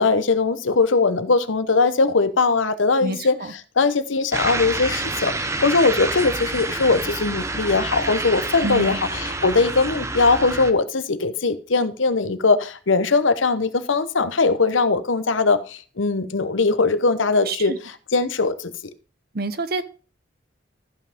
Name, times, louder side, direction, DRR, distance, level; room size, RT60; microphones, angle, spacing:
voice 1, 0.0-3.4 3.8-17.7 18.1-18.7, left 4 dB, 85° left, 0.9 m, -20 dB
voice 2, 3.0-3.5 8.6-9.0 17.5-17.8 19.3-19.8, right 2 dB, 50° right, 0.9 m, -27 dB
sound 1, 4.3-10.7, right 2 dB, 15° right, 0.7 m, -28 dB
14.0 x 5.6 x 5.1 m
head